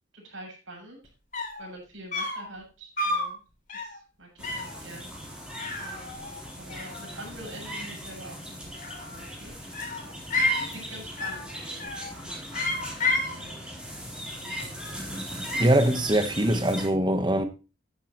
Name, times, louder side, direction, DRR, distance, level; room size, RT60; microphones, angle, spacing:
voice 1, 0.1-1.0 1.6-3.4 3.8-5.1 5.8-6.2 6.5-9.5 9.9-10.1 10.7-13.7 14.0-15.2, right 1 dB, 80° right, 7.1 m, -46 dB
sound 1, 1.0-1.1 1.3-1.7 2.1-2.5 3.0-3.3 3.7-4.0 4.4-4.8 5.6-6.4 6.7-7.4 8.6-9.3 9.7-10.7 11.2-11.5 11.8-12.2 12.5-13.4, left 2 dB, 40° left, 3.3 m, -30 dB
sound 2, 4.4-16.9, equal, 5° right, 3.9 m, -38 dB
voice 2, 15.6-17.4, right 1 dB, 20° right, 1.2 m, -22 dB
12.5 x 10.5 x 3.1 m
head